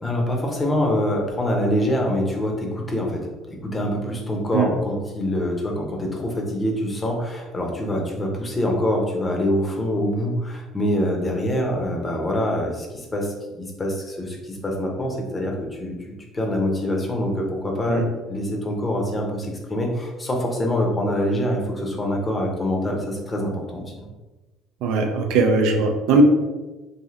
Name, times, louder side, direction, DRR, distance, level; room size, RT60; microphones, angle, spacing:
voice 1, 0.0-16.0 16.3-24.1, left 1 dB, 20° left, 0 dB, 0.6 m, -25 dB
voice 2, 24.8-26.2, right 4 dB, 75° right, 4 dB, 0.4 m, -19 dB
3.1 x 2.5 x 2.4 m, 1.2 s
cardioid pair, 130°, 0 cm